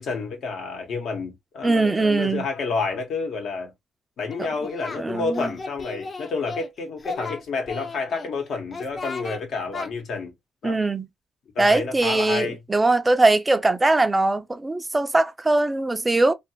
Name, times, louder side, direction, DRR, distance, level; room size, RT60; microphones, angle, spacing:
voice 1, 0.0-3.7 4.2-10.3 10.6-10.8 11.5-12.6, left 4 dB, 65° left, 1.1 m, -29 dB
voice 2, 1.6-2.4 4.4-4.5 5.0-5.5 10.6-11.1 11.6-16.3, right 2 dB, 20° right, 0.4 m, -21 dB
Singing, 4.3-5.0 5.3-6.7 7.0-8.3 8.7-9.4 9.7-9.9, left 4 dB, 35° left, 0.6 m, -35 dB
2.5 x 2.4 x 2.8 m
cardioid pair, 90°, 0 cm